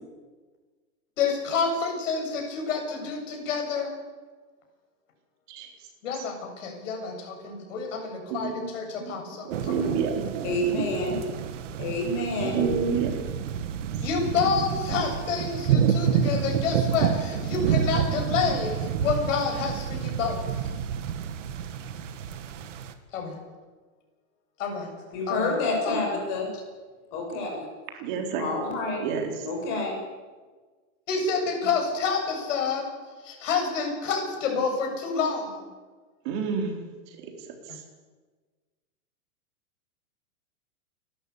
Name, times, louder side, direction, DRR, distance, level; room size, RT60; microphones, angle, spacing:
voice 1, 1.2-3.9 6.0-9.7 14.0-20.4 23.1-23.4 24.6-24.9 25.3-25.5 25.8-26.1 31.1-32.8 33.2-35.6, left 5 dB, 55° left, 2 dB, 7.9 m, -28 dB
voice 2, 9.4-11.2 12.4-13.2 27.9-28.5 29.0-29.5 36.2-36.8 37.1-37.3 37.7-37.8, right 6 dB, 35° right, 3 dB, 3.9 m, -29 dB
sound 1, 9.5-22.9, right 8 dB, 55° right, 2.0 m, -29 dB
voice 3, 10.4-11.2 11.8-12.6 25.1-26.5 27.1-27.6 28.4-29.0 29.4-29.9, left 2 dB, 35° left, 1 dB, 7.2 m, -28 dB
29.0 x 13.5 x 8.6 m, 1.4 s
supercardioid pair, 175°, 44 cm